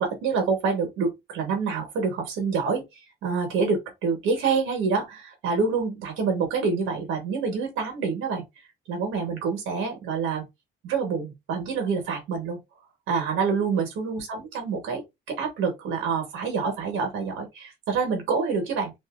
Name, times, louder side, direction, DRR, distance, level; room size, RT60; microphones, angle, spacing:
voice 1, 0.0-8.4 8.9-10.4 10.8-12.6 13.1-15.0 15.3-18.9, right 5 dB, 85° right, 1.2 m, -27 dB
2.6 x 2.6 x 2.4 m
cardioid pair, 90°, 20 cm